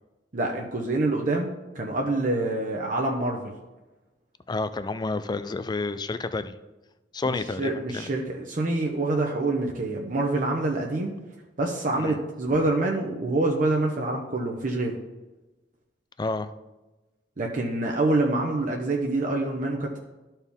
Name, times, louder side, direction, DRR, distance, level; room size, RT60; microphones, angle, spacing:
voice 1, 0.3-1.5 1.7-3.5 7.2-11.1 11.6-15.0 17.4-20.0, right 2 dB, 50° right, 0 dB, 0.8 m, -26 dB
voice 2, 4.5-6.5 7.1-8.1 12.0-12.2 16.2-16.5, left 3 dB, 25° left, 12 dB, 0.4 m, -30 dB
13.0 x 4.4 x 3.5 m, 1.1 s
head